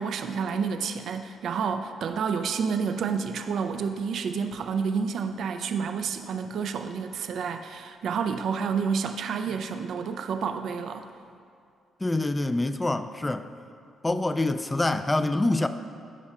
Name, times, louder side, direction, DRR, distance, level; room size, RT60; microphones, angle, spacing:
voice 1, 0.0-11.1, right 6 dB, 65° right, 7 dB, 0.4 m, -29 dB
voice 2, 12.0-13.5 14.0-15.7, left 2 dB, 15° left, 10 dB, 0.4 m, -25 dB
14.5 x 5.4 x 2.4 m, 2.4 s
cardioid pair, 90°, 0 cm